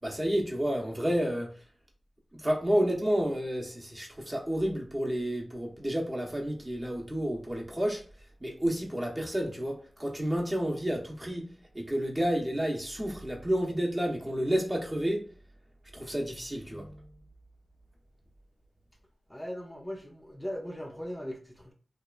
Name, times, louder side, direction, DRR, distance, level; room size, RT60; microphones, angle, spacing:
voice 1, 0.0-1.5 2.3-8.0 8.4-15.3 15.9-17.0, equal, 25° right, 0.8 m, -30 dB
voice 2, 19.3-21.7, equal, 10° left, 0.5 m, -39 dB
2.9 x 2.3 x 2.3 m
cardioid pair, 50°, 0 cm